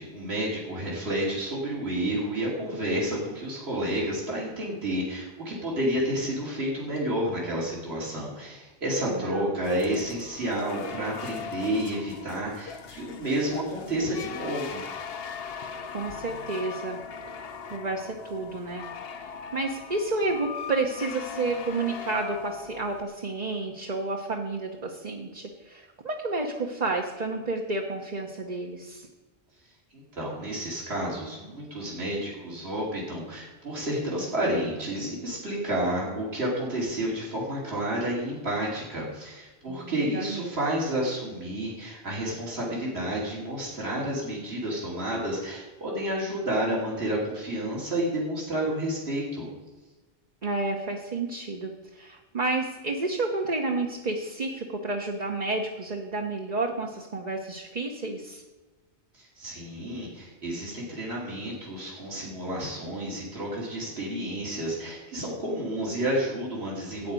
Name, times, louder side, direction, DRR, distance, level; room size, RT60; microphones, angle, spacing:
voice 1, 0.0-14.8 29.9-49.5 59.1-67.1, right 1 dB, 70° right, -5 dB, 3.1 m, -30 dB
voice 2, 9.1-10.0 15.9-17.0 17.7-18.9 19.2-29.1 39.7-40.5 50.4-58.4, right 3 dB, 40° right, 1 dB, 1.1 m, -31 dB
sound 1, 9.6-23.0, left 7 dB, 65° left, 1.0 m, -39 dB
13.0 x 5.0 x 9.0 m, 1.2 s
omnidirectional pair, 1.1 m